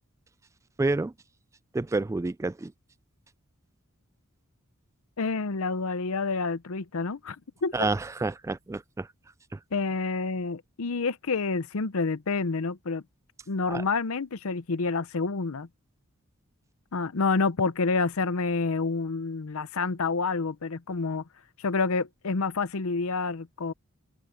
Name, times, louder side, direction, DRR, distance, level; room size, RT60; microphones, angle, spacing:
voice 1, 0.8-1.1 1.7-2.7 7.7-9.1 13.7-13.8, right 3 dB, 15° right, 0.3 m, -28 dB
voice 2, 5.2-7.4 7.6-7.9 9.7-13.0 13.5-15.7 16.9-21.2 21.6-23.7, left 4 dB, 70° left, 0.7 m, -28 dB
open air
head